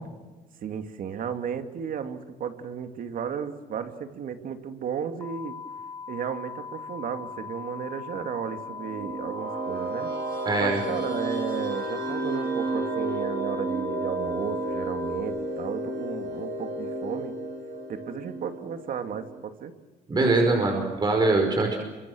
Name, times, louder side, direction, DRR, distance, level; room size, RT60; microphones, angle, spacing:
voice 1, 0.6-5.6 6.1-10.1 10.6-17.3 17.9-19.7, right 7 dB, 55° right, 7 dB, 2.7 m, -34 dB
sound 1, 5.2-15.2, left 6 dB, 15° left, 2.1 m, -40 dB
sound 2, 8.5-19.4, right 2 dB, 80° right, 6.3 m, -32 dB
voice 2, 10.5-10.8 20.1-21.8, right 2 dB, 25° right, 2 dB, 5.2 m, -22 dB
28.0 x 25.5 x 6.5 m, 1.2 s
cardioid pair, 110°, 17 cm